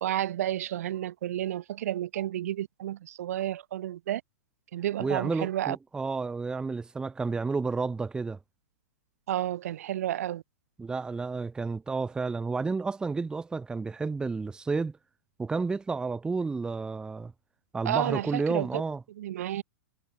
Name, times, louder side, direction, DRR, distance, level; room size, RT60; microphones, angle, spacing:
voice 1, 0.0-4.2 4.7-5.8 9.3-10.4 17.8-18.7 19.2-19.6, right 12 dB, 65° right, 0.9 m, -31 dB
voice 2, 5.0-8.4 10.8-15.0 15.4-17.3 17.7-19.0, right 4 dB, 10° right, 0.7 m, -31 dB
hypercardioid pair, 120°, 9 cm